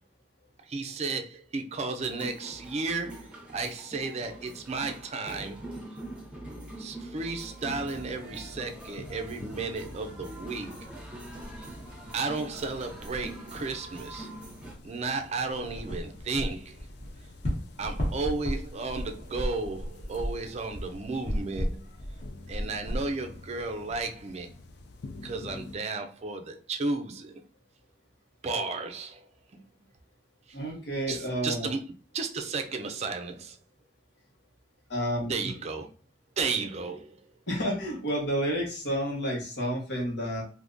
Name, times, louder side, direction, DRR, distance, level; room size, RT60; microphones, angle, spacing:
voice 1, 0.6-5.6 6.8-10.9 12.1-14.3 14.8-16.8 17.8-21.8 22.5-24.5 25.2-27.4 28.4-29.6 30.5-30.6 31.1-31.8 32.1-33.6 35.3-35.9 36.4-37.2, right 3 dB, 40° right, 0.4 m, -33 dB
sound 1, 2.0-14.7, right 1 dB, 5° right, 0.7 m, -44 dB
sound 2, 7.6-25.8, left 2 dB, 65° left, 0.4 m, -48 dB
sound 3, 15.5-24.0, equal, 40° left, 1.2 m, -35 dB
voice 2, 30.5-31.7 34.9-35.3 37.5-40.4, equal, 85° left, 1.3 m, -30 dB
3.5 x 2.6 x 2.6 m
head